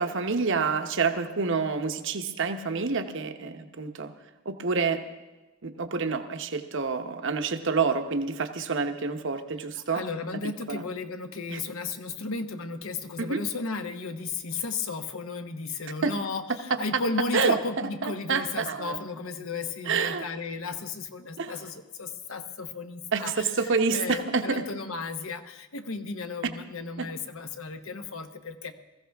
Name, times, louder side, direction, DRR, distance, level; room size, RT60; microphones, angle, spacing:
voice 1, 0.0-4.1 4.4-5.0 5.6-10.0 10.7-10.8 11.5-11.6 13.2-13.4 16.0-16.1 16.7-17.0 17.3-17.6 18.0-19.0 19.9-20.2 21.4-21.5 23.1-24.6 27.0-27.1, right 4 dB, 55° right, 7 dB, 1.0 m, -28 dB
voice 2, 9.7-28.7, left 4 dB, 65° left, 8 dB, 1.0 m, -34 dB
20.5 x 14.5 x 3.5 m, 1.1 s
head